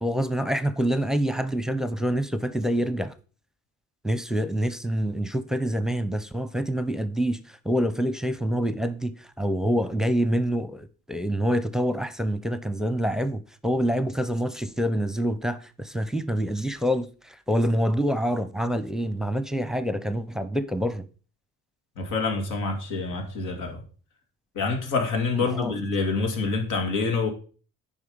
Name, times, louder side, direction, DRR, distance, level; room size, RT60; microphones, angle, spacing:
voice 1, 0.0-3.1 4.0-21.1 25.3-25.7, equal, ahead, 0.8 m, -26 dB
voice 2, 22.0-23.8 24.5-27.3, left 4 dB, 90° left, 2.4 m, -26 dB
9.4 x 5.4 x 5.2 m
cardioid pair, 90°, 30 cm